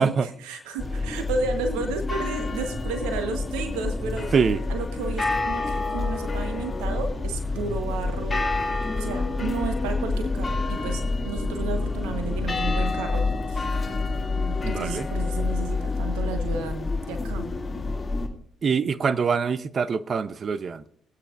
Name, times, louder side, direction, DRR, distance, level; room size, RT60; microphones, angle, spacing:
voice 1, 0.0-4.3 4.7-13.6 14.4-17.5, right 4 dB, 80° right, 1.1 m, -33 dB
sound 1, 0.8-18.3, left 3 dB, 25° left, 2.4 m, -28 dB
voice 2, 14.6-15.1 18.6-21.0, right 5 dB, 45° right, 0.7 m, -24 dB
22.5 x 8.9 x 2.5 m
hypercardioid pair, 50°, 0 cm